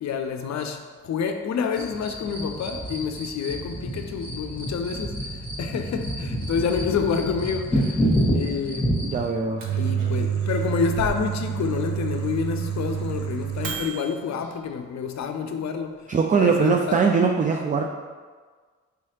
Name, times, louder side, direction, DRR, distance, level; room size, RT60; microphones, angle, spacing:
voice 1, 0.0-5.3 5.6-8.1 8.3-8.9 9.8-15.9 16.4-17.0, left 6 dB, 50° left, 0.5 m, -28 dB
sound 1, 1.7-9.2, equal, 15° left, 1.3 m, -28 dB
voice 2, 9.0-9.6 16.1-17.9, right 5 dB, 25° right, 0.3 m, -21 dB
Microwave oven, 9.4-14.2, right 8 dB, 65° right, 0.8 m, -28 dB
4.7 x 3.1 x 2.9 m
hypercardioid pair, 45°, 35 cm